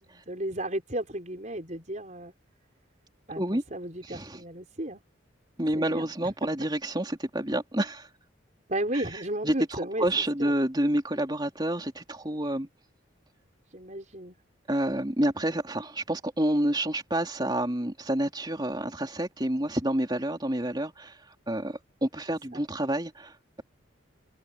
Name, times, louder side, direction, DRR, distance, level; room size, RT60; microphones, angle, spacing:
voice 1, 0.0-2.3 3.3-5.0 5.7-6.0 8.7-10.5 13.7-14.4 22.5-22.6, right 1 dB, 40° right, 5.0 m, -34 dB
voice 2, 4.0-4.4 5.6-8.1 8.9-9.0 9.4-12.7 14.7-21.2 21.5-23.6, right 1 dB, 20° right, 3.3 m, -29 dB
head